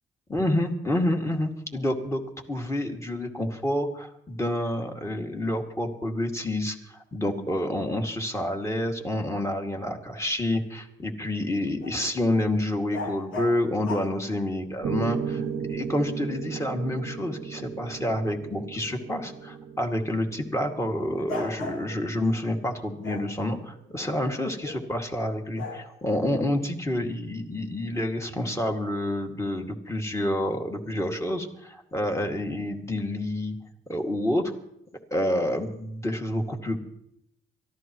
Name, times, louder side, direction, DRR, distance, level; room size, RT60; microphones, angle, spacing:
voice 1, 0.3-2.2 2.5-33.5 33.9-34.4 35.1-36.8, left 1 dB, 15° left, 2 dB, 2.3 m, -28 dB
sound 1, 11.8-12.0 12.9-14.2 16.1-16.2 21.3-22.3 23.0-24.9 25.6-25.8, left 3 dB, 85° left, 2.7 m, -37 dB
Piano, 14.8-22.9, right 7 dB, 65° right, 0.8 m, -36 dB
24.0 x 14.5 x 3.1 m, 0.78 s
cardioid pair, 90°, 20 cm